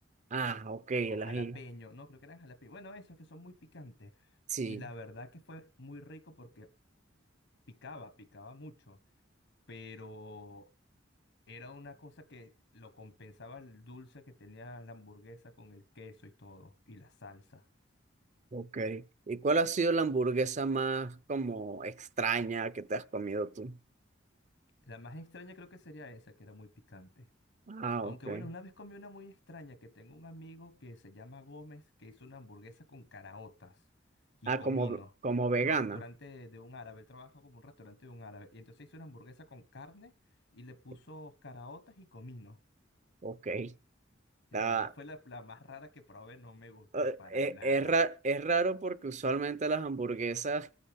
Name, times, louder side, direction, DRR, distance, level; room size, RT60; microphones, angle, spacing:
voice 1, 0.3-1.6 4.5-4.8 18.5-23.8 27.7-28.4 34.5-36.0 43.2-43.7 44.5-44.9 46.9-50.7, right 3 dB, 40° right, 0.6 m, -32 dB
voice 2, 1.1-4.3 4.7-6.7 7.7-9.0 9.7-10.7 11.5-17.6 24.9-27.3 28.0-33.8 34.4-35.1 35.6-40.1 40.5-42.6 44.5-47.9, left 2 dB, 85° left, 1.3 m, -49 dB
24.5 x 9.8 x 3.6 m
head